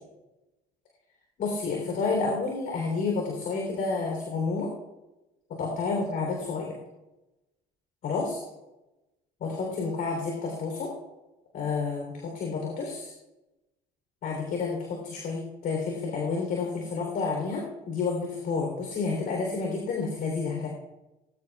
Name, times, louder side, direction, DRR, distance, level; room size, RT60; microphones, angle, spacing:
voice 1, 1.4-4.7 5.6-6.7 8.0-8.4 9.4-10.9 11.5-13.1 14.2-20.7, left 4 dB, 65° left, 0 dB, 3.6 m, -30 dB
20.5 x 14.5 x 2.4 m, 1.0 s
cardioid pair, 110°, 17 cm